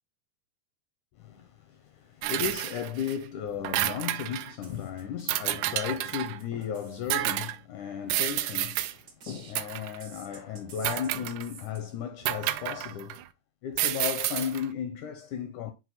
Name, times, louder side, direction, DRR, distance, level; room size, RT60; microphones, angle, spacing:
voice 1, 1.2-13.2 13.6-15.7, left 8 dB, 80° left, 1.8 m, -35 dB
sound 1, 2.2-3.2 3.5-4.5 5.3-6.4 7.1-7.6 8.1-8.9 9.5-10.0 10.8-11.6 12.3-13.2 13.7-14.6, right 15 dB, 85° right, 1.8 m, -30 dB
sound 2, 4.6-7.4 8.3-9.6 10.0-11.8, right 5 dB, 60° right, 1.1 m, -50 dB
6.3 x 4.6 x 4.1 m
omnidirectional pair, 4.1 m